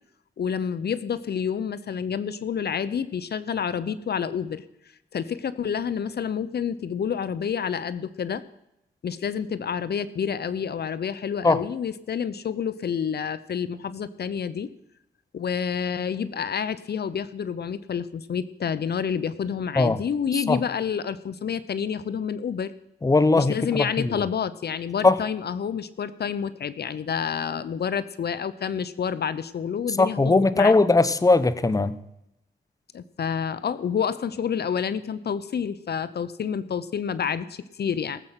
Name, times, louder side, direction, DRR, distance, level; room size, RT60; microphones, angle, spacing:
voice 1, 0.4-4.6 5.1-8.4 9.0-14.7 15.3-22.7 23.4-30.8 32.9-38.2, left 7 dB, 65° left, 15 dB, 0.7 m, -29 dB
voice 2, 23.0-24.2 25.0-25.2 29.9-32.0, left 3 dB, 20° left, 14 dB, 0.8 m, -20 dB
18.5 x 7.9 x 5.7 m, 0.84 s
wide cardioid pair, 95°, 18 cm